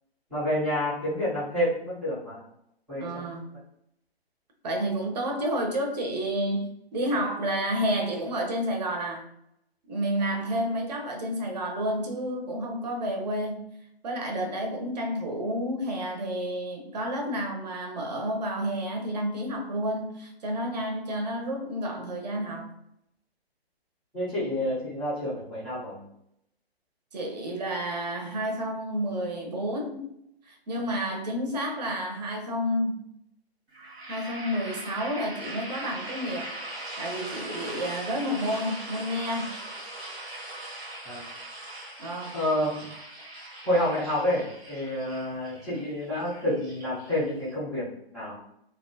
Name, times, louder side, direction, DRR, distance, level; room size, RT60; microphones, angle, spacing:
voice 1, 0.3-2.4 2.9-3.3 24.1-26.1 41.0-41.2 42.3-42.9 43.6-47.8 48.1-48.4, left 1 dB, ahead, -16 dB, 0.4 m, -29 dB
voice 2, 2.9-3.5 4.6-9.3 9.9-13.7 14.0-22.7 27.1-30.0 30.5-33.0 34.1-36.5 37.0-39.5 42.0-42.4, equal, 40° right, 1 dB, 0.7 m, -30 dB
sound 1, 33.7-47.5, right 1 dB, 80° right, 0.9 m, -40 dB
2.6 x 2.3 x 2.6 m, 0.78 s
figure-of-eight pair, 140°, 32 cm